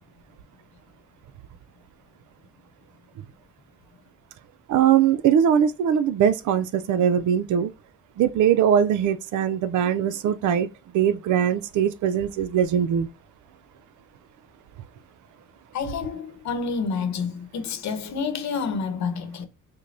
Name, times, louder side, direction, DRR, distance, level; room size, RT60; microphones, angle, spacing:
voice 1, 4.7-7.7 8.2-10.7 10.9-13.1, right 9 dB, 75° right, 0.6 m, -21 dB
voice 2, 15.7-19.5, left 5 dB, 65° left, 0.9 m, -29 dB
5.1 x 2.2 x 2.6 m
cardioid pair, 90°, 30 cm